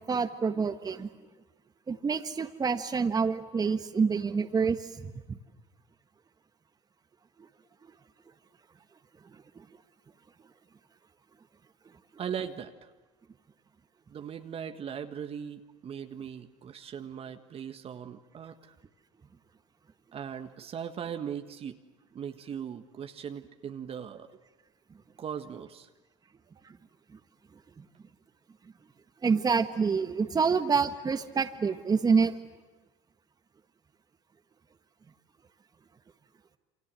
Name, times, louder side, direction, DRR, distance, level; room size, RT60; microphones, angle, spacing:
voice 1, 0.1-1.1 1.9-5.4 27.8-27.9 29.2-32.3, right 5 dB, 25° right, 8 dB, 1.6 m, -27 dB
voice 2, 12.2-12.9 14.1-18.7 20.1-21.8 22.1-24.4 25.2-25.9, right 8 dB, 40° right, 7 dB, 1.6 m, -39 dB
29.0 x 25.0 x 7.7 m, 1.2 s
supercardioid pair, 85°, 15 cm